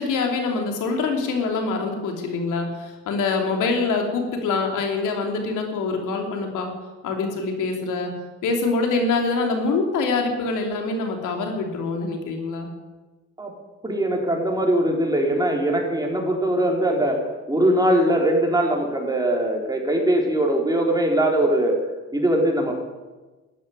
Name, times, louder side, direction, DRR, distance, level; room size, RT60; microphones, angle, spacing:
voice 1, 0.0-6.7 7.0-8.1 8.4-12.7, left 4 dB, 90° left, 3 dB, 3.1 m, -25 dB
voice 2, 13.8-17.2 17.5-21.8 22.1-22.7, right 1 dB, 10° right, 0 dB, 4.1 m, -21 dB
13.0 x 10.0 x 9.8 m, 1.2 s
cardioid pair, 90°, 30 cm